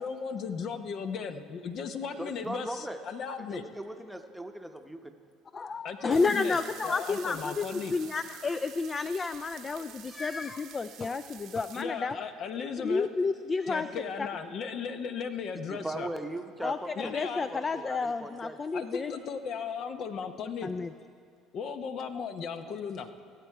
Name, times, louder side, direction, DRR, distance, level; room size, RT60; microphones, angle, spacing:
voice 1, 0.0-3.6 5.8-7.9 11.7-13.1 13.7-16.1 17.0-17.5 18.7-20.7 21.5-23.2, left 6 dB, 55° left, 9 dB, 0.8 m, -36 dB
voice 2, 2.2-3.0 3.5-5.2 15.7-17.1 17.5-18.6, right 1 dB, 5° right, 6 dB, 0.9 m, -38 dB
voice 3, 5.5-12.2 12.8-13.9 14.2-14.3 16.6-16.8 17.1-19.1 20.6-20.9, left 4 dB, 30° left, 12 dB, 0.3 m, -31 dB
sound 1, 6.1-11.8, right 11 dB, 60° right, 0.8 m, -48 dB
17.0 x 7.7 x 4.7 m, 2.4 s
supercardioid pair, 80°, 0 cm